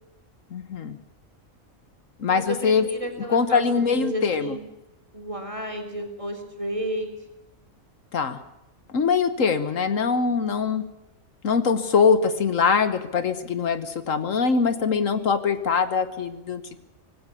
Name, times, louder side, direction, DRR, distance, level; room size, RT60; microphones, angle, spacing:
voice 1, 0.5-1.0 2.2-2.8 3.3-4.6 8.1-8.4 8.9-10.8 11.4-16.8, left 5 dB, 70° left, 11 dB, 1.6 m, -23 dB
voice 2, 2.3-4.6 5.1-7.1, equal, 25° right, 4 dB, 3.6 m, -32 dB
19.5 x 16.5 x 8.4 m, 0.93 s
omnidirectional pair, 1.4 m